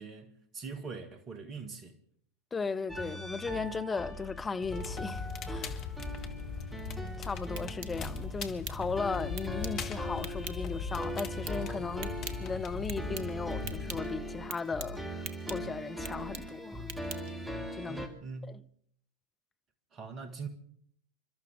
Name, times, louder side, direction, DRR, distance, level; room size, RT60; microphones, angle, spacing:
voice 1, 0.0-2.0 17.9-18.6 19.9-20.5, right 5 dB, 30° right, 1.9 m, -42 dB
voice 2, 2.5-5.8 7.2-12.1 12.4-16.9 17.8-18.0 18.5-18.6, left 4 dB, 15° left, 0.7 m, -36 dB
sound 1, 2.9-18.1, equal, 5° right, 2.2 m, -40 dB
Crackle, 4.6-14.0, left 5 dB, 35° left, 1.4 m, -40 dB
sound 2, 7.3-17.5, right 5 dB, 45° right, 1.5 m, -47 dB
28.5 x 13.0 x 3.6 m
figure-of-eight pair, 90°, 0 cm